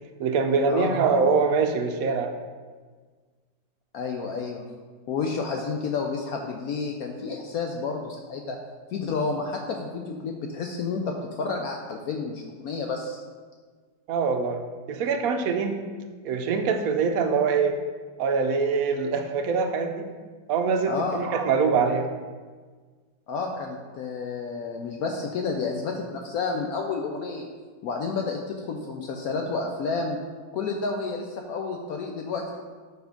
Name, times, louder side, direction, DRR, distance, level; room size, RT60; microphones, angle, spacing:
voice 1, 0.2-2.3 14.1-14.6 14.9-15.8 16.2-17.8 18.2-20.0 20.5-22.1, right 5 dB, 70° right, 5 dB, 1.0 m, -24 dB
voice 2, 3.9-4.6 5.1-8.6 8.9-13.2 20.9-21.2 23.3-27.5 27.8-30.2 30.5-32.6, left 4 dB, 70° left, 2 dB, 1.0 m, -30 dB
7.0 x 4.3 x 5.2 m, 1.5 s
omnidirectional pair, 1.8 m